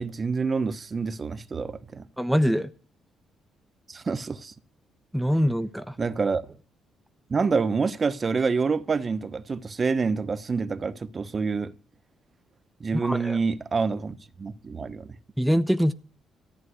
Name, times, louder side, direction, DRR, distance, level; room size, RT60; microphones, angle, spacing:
voice 1, 0.0-2.1 3.9-4.5 6.0-6.6 7.3-11.7 12.8-15.2, right 4 dB, 35° right, 1.1 m, -27 dB
voice 2, 2.2-2.7 5.1-5.9 12.9-13.4 15.4-15.9, equal, ahead, 0.9 m, -23 dB
14.5 x 9.0 x 8.1 m
cardioid pair, 90°, 0 cm